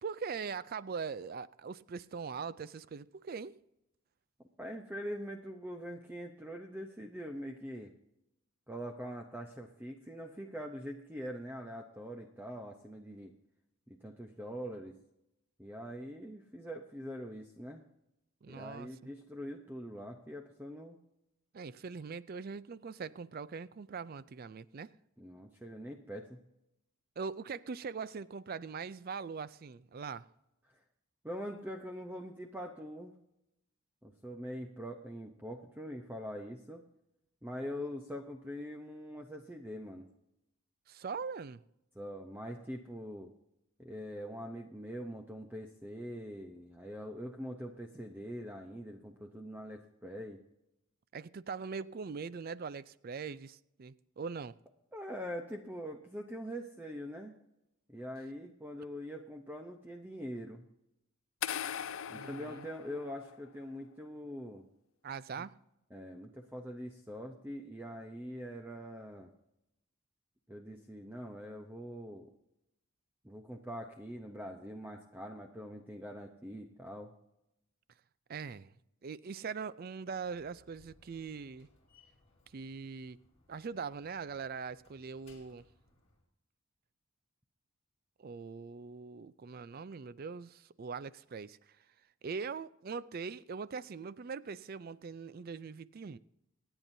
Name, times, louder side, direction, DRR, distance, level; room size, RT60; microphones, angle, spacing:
voice 1, 0.0-3.6 18.4-18.9 21.5-24.9 27.2-30.3 40.9-41.6 51.1-54.5 62.1-62.7 65.0-65.5 78.3-78.7 79.0-81.7 82.5-83.2 83.5-85.6 88.2-91.8 92.2-96.2, right 5 dB, 45° right, 0.4 m, -41 dB
voice 2, 4.6-7.9 8.7-13.3 13.9-14.9 15.6-17.8 18.5-21.0 25.2-26.4 30.7-30.8 31.2-33.1 34.0-36.9 37.4-40.1 41.9-43.3 43.8-50.4 54.9-57.3 57.9-60.7 62.1-64.6 65.4-65.5 65.9-69.3 70.5-72.3 73.2-77.1, equal, 10° right, 0.7 m, -43 dB
sound 1, 61.4-63.5, left 9 dB, 65° left, 0.4 m, -40 dB
Slam, 80.1-86.2, left 3 dB, 25° left, 2.4 m, -66 dB
26.5 x 9.0 x 2.7 m
head